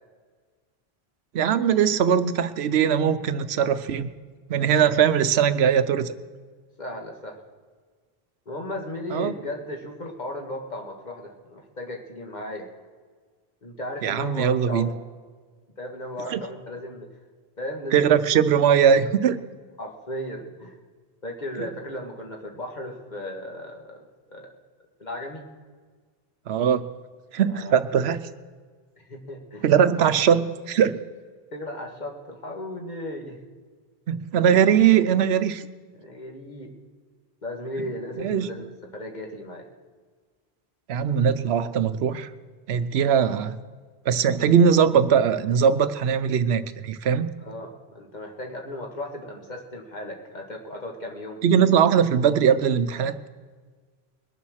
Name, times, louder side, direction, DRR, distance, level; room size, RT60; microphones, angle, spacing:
voice 1, 1.3-4.1 4.5-6.1 9.1-9.3 14.0-14.9 16.3-16.4 17.9-19.4 21.6-21.7 26.5-26.9 27.3-28.2 29.6-31.0 34.1-35.6 38.2-38.5 40.9-42.3 42.7-43.6 44.1-47.3 51.4-53.1, right 8 dB, 80° right, 12 dB, 0.9 m, -20 dB
voice 2, 6.8-7.4 8.4-12.7 13.6-15.0 15.8-17.1 17.6-18.0 18.8-18.9 19.8-20.8 21.2-24.0 24.3-24.5 25.0-25.5 27.5-27.8 29.0-29.7 30.0-30.1 31.5-33.4 35.9-36.8 37.4-38.6 38.9-39.7 47.4-51.4, left 1 dB, 45° left, 1 dB, 1.8 m, -36 dB
21.5 x 7.3 x 6.3 m, 1.5 s
omnidirectional pair, 1.1 m